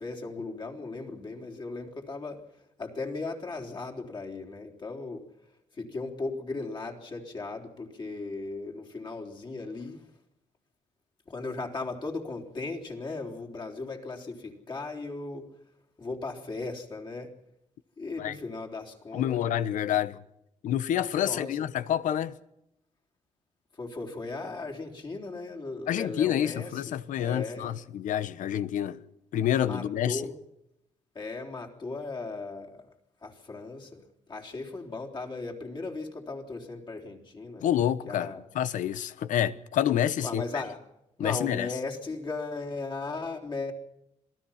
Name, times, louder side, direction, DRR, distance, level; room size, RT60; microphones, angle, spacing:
voice 1, 0.0-5.3 5.7-10.1 11.3-15.5 16.0-17.3 18.0-19.4 21.2-21.6 23.7-27.8 29.6-30.4 31.1-32.9 33.2-37.7 38.1-38.4 40.2-40.8 41.2-43.7, left 3 dB, 35° left, 3.8 m, -37 dB
voice 2, 19.1-20.2 20.6-22.4 25.9-29.0 29.3-30.2 37.6-40.4 41.2-41.7, left 10 dB, 85° left, 1.1 m, -28 dB
27.0 x 18.5 x 5.8 m
cardioid pair, 135°, 13 cm